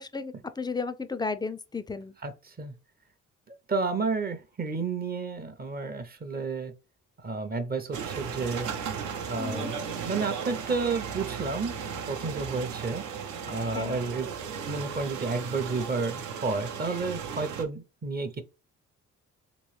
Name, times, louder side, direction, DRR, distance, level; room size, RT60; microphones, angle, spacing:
voice 1, 0.0-2.1 9.4-9.7 13.6-14.0, left 4 dB, 15° left, 0.3 m, -34 dB
voice 2, 2.2-2.7 3.5-6.7 7.2-8.7 9.2-9.8 10.0-11.8 12.1-13.0 13.5-14.3 14.7-18.4, right 4 dB, 30° right, 0.6 m, -31 dB
sound 1, 7.9-17.6, right 7 dB, 75° right, 0.7 m, -36 dB
3.0 x 3.0 x 3.1 m
cardioid pair, 90°, 30 cm